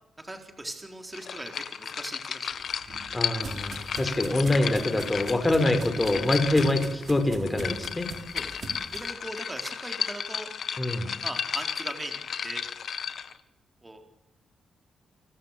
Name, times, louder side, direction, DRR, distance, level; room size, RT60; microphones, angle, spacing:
voice 1, 0.2-2.6 8.3-8.5 8.9-10.5 11.2-12.6 13.8-14.0, right 1 dB, 15° right, 4 dB, 4.3 m, -40 dB
sound 1, 1.1-13.4, left 7 dB, 55° left, 1.7 m, -34 dB
sound 2, 2.5-9.1, right 3 dB, 50° right, 6.8 m, -42 dB
voice 2, 3.1-8.1 10.8-11.1, left 2 dB, 15° left, 7 dB, 5.2 m, -25 dB
29.5 x 25.5 x 7.6 m, 0.83 s
cardioid pair, 115°, 0 cm